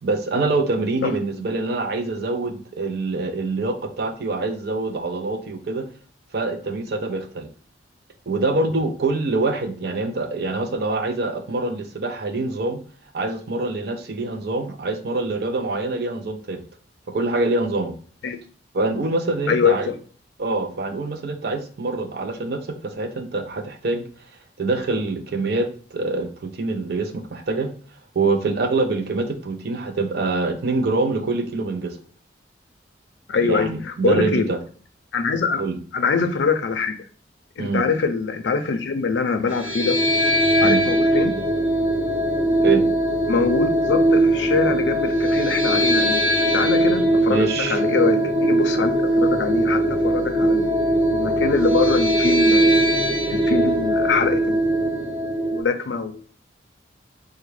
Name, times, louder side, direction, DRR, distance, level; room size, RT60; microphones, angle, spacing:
voice 1, 0.0-5.8 6.3-7.5 8.3-12.8 13.1-16.6 17.1-18.0 18.7-19.9 20.4-24.1 24.6-27.7 28.2-32.0 33.4-34.6 35.6-35.8 37.6-37.9 40.6-40.8 42.6-42.9 47.3-47.8, right 3 dB, 55° right, 7 dB, 0.5 m, -25 dB
voice 2, 19.5-20.0 33.3-34.5 35.1-35.6 35.9-36.9 37.6-40.0 40.6-41.3 43.3-50.7 51.1-52.8 53.3-54.9 55.5-56.2, left 5 dB, 70° left, 7 dB, 0.4 m, -24 dB
sound 1, 39.5-55.6, right 1 dB, 35° right, 0.8 m, -20 dB
3.4 x 2.1 x 3.1 m, 0.43 s
head